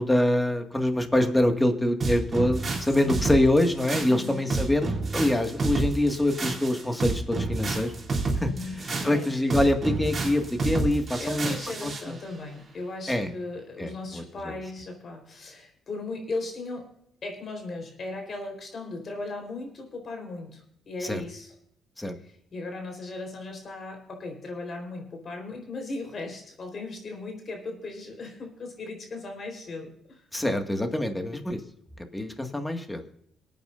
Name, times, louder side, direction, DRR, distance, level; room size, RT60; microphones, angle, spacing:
voice 1, 0.0-7.9 8.4-8.5 8.8-11.6 11.8-12.1 13.1-13.3 13.8-14.5 21.0-21.2 22.0-22.1 30.3-31.6 32.1-33.0, left 1 dB, 10° left, 5 dB, 2.0 m, -25 dB
sound 1, 2.0-12.1, right 3 dB, 35° right, 3.7 m, -29 dB
voice 2, 4.1-4.4 8.4-9.3 11.2-17.0 17.2-21.5 22.2-30.0, left 2 dB, 50° left, 3 dB, 4.1 m, -37 dB
26.0 x 9.1 x 2.6 m, 0.69 s
cardioid pair, 90°, 0 cm